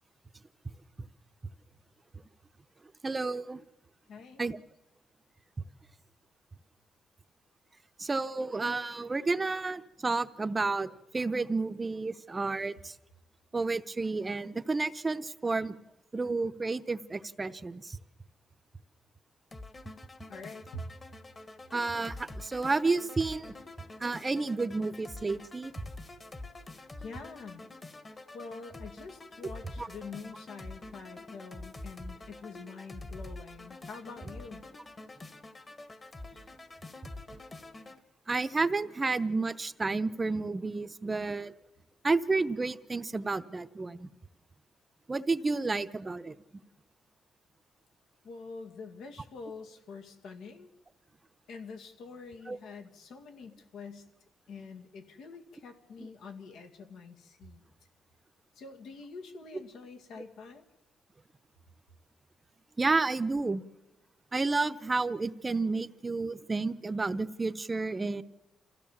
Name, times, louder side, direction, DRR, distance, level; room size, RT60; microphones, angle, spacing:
voice 1, 3.0-3.6 4.4-4.6 8.0-12.9 13.5-15.8 16.1-18.0 21.7-23.5 24.0-25.7 29.8-29.9 38.3-41.5 42.0-44.1 45.1-46.3 52.5-52.6 62.8-63.6 64.3-68.2, right 3 dB, 25° right, 12 dB, 0.7 m, -31 dB
voice 2, 4.1-4.4 20.3-20.9 27.0-27.6 28.3-34.7 48.2-50.7 51.5-54.0 54.5-57.6 58.6-60.6, left 4 dB, 85° left, 4 dB, 2.2 m, -46 dB
sound 1, 19.5-38.0, left 2 dB, 25° left, 1.4 m, -46 dB
26.5 x 15.5 x 7.2 m, 1.0 s
cardioid pair, 110°, 0 cm